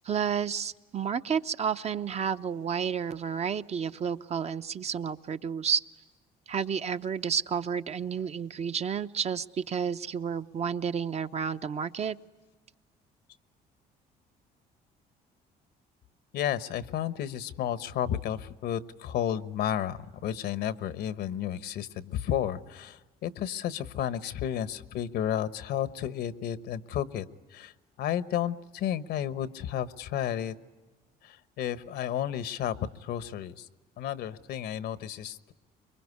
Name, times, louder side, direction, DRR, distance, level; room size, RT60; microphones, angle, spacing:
voice 1, 0.0-5.8 6.5-12.2, right 7 dB, 40° right, 10 dB, 0.8 m, -31 dB
voice 2, 16.3-30.5 31.2-33.7 34.0-35.5, left 10 dB, 75° left, 14 dB, 1.1 m, -32 dB
25.0 x 22.5 x 9.6 m, 1.2 s
cardioid pair, 110°, 17 cm